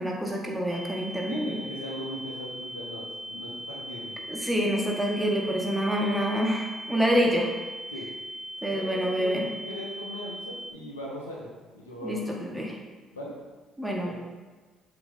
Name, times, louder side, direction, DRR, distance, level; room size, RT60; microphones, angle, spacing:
voice 1, 0.0-1.6 4.3-7.5 8.6-9.5 12.0-12.8 13.8-14.1, equal, 5° right, -1 dB, 1.6 m, -27 dB
sound 1, 0.7-10.7, equal, 35° left, 1.4 m, -39 dB
voice 2, 1.3-4.1 7.9-8.1 8.7-11.5 11.7-12.3 13.1-13.3 14.0-14.1, equal, 90° left, -3 dB, 1.1 m, -39 dB
7.8 x 3.2 x 5.2 m, 1.3 s
figure-of-eight pair, 50°, 0 cm